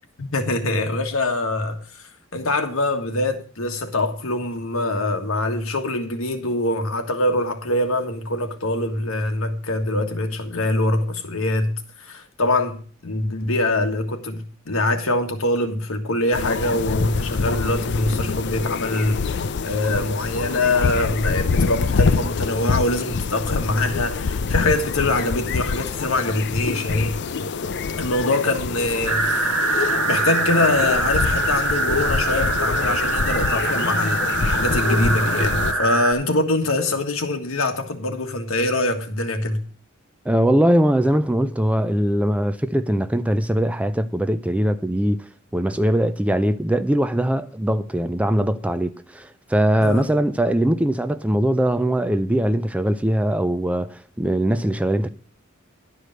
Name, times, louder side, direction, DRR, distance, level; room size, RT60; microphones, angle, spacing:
voice 1, 0.2-27.2 27.9-39.6 49.8-50.0, left 2 dB, 75° left, 1.5 m, -24 dB
sound 1, 16.3-35.7, left 4 dB, 55° left, 0.5 m, -26 dB
sound 2, 29.1-36.1, right 2 dB, 75° right, 1.6 m, -23 dB
voice 2, 40.3-45.3 45.5-55.1, right 1 dB, 5° right, 0.4 m, -21 dB
11.0 x 5.0 x 7.6 m
head